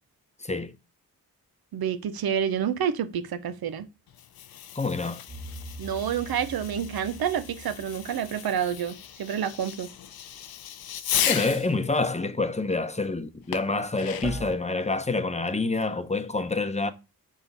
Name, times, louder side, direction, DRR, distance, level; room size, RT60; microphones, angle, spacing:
voice 1, 0.4-0.8 4.7-5.2 11.3-16.9, left 3 dB, 20° left, 0.8 m, -27 dB
voice 2, 1.7-3.9 5.8-9.9, right 8 dB, 70° right, 0.7 m, -28 dB
Fireworks, 4.1-11.7 13.5-14.5, left 10 dB, 70° left, 0.6 m, -35 dB
sound 1, 5.3-9.5 14.2-14.6, right 1 dB, 20° right, 2.1 m, -42 dB
6.2 x 3.8 x 4.0 m
cardioid pair, 45°, 37 cm